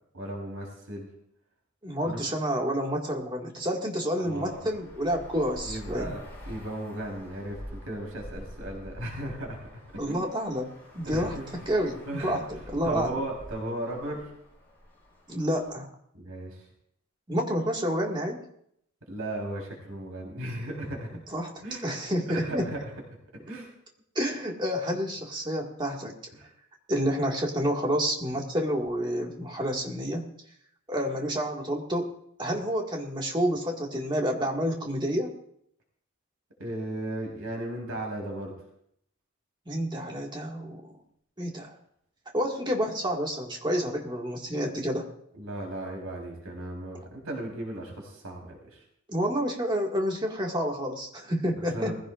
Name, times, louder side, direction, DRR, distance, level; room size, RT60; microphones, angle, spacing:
voice 1, 0.1-1.1 2.0-2.2 4.2-4.7 5.6-10.3 11.0-11.5 12.1-12.4 12.8-14.3 16.1-16.6 19.1-21.1 21.6-21.9 22.3-22.9 23.5-23.7 26.3-26.5 36.6-38.5 45.4-48.8 51.7-52.0, right 1 dB, 90° right, 0 dB, 4.0 m, -36 dB
voice 2, 1.8-6.2 10.0-11.3 11.7-13.2 15.3-15.9 17.3-18.4 21.3-21.5 21.8-22.7 24.2-26.1 26.9-30.2 30.9-32.1 32.4-35.3 39.7-40.9 41.4-41.8 42.3-45.1 49.1-52.0, equal, 20° right, 0 dB, 2.0 m, -29 dB
Traffic noise roadway noise, 4.3-15.7, equal, 10° left, 7.6 m, -46 dB
20.5 x 15.5 x 2.5 m, 0.71 s
head